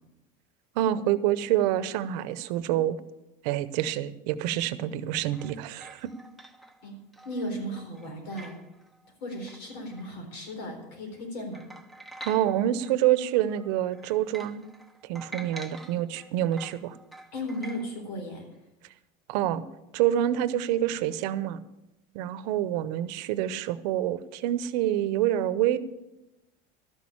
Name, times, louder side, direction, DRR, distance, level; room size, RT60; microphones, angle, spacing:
voice 1, 0.8-3.0 3.4-6.1 12.2-14.6 15.0-16.9 19.3-19.6 19.9-21.6 22.1-25.8, right 12 dB, 80° right, 15 dB, 0.8 m, -27 dB
sound 1, 5.1-10.8 11.2-11.3 11.5-13.0 13.3-17.9, right 2 dB, ahead, 0.7 m, -47 dB
voice 2, 7.2-8.5 9.2-11.6 17.3-18.4, equal, 85° left, 3 dB, 4.1 m, -35 dB
12.5 x 6.4 x 8.6 m, 0.94 s
cardioid pair, 140°, 21 cm